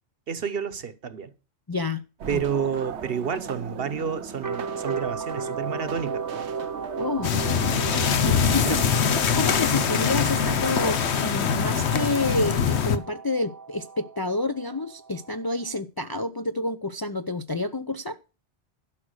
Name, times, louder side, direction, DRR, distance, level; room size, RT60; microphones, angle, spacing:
voice 1, 0.3-1.3 2.3-6.2 8.5-8.8, right 7 dB, 60° right, 1.1 m, -30 dB
voice 2, 1.7-2.0 2.3-2.4 7.0-7.3 8.2-8.7 9.4-18.2, left 2 dB, 30° left, 0.4 m, -29 dB
sound 1, 2.2-15.8, right 5 dB, 25° right, 0.4 m, -36 dB
sound 2, 2.2-8.9, right 8 dB, 90° right, 1.1 m, -39 dB
sound 3, 7.2-13.0, left 6 dB, 85° left, 1.2 m, -23 dB
12.0 x 6.1 x 6.4 m
omnidirectional pair, 1.1 m